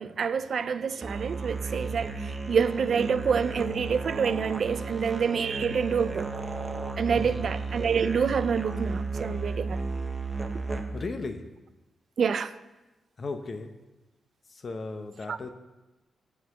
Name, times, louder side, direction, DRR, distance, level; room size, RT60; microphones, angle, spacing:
voice 1, 0.0-6.3 7.0-9.8 12.2-12.5 15.3-15.4, right 6 dB, 55° right, 14 dB, 0.3 m, -27 dB
Musical instrument, 1.0-11.1, right 3 dB, 25° right, 0.8 m, -34 dB
voice 2, 7.2-7.5 10.9-11.4 13.2-13.7 14.5-15.5, left 3 dB, 40° left, 8 dB, 0.8 m, -36 dB
9.0 x 4.6 x 7.1 m, 1.1 s
cardioid pair, 110°, 0 cm